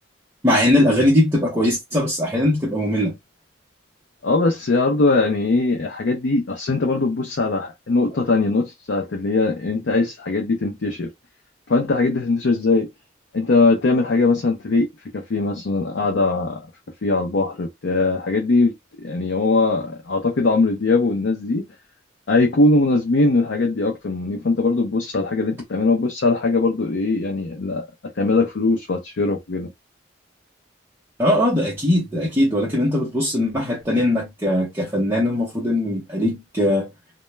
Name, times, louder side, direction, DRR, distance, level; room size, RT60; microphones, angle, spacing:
voice 1, 0.4-3.1 31.2-36.9, left 1 dB, 10° right, 0.6 m, -20 dB
voice 2, 4.2-11.1 11.7-12.9 13.3-14.9 15.1-16.6 17.0-18.7 19.0-21.6 22.3-27.9 28.2-29.7, left 3 dB, 65° left, 0.5 m, -20 dB
2.1 x 2.1 x 3.0 m
head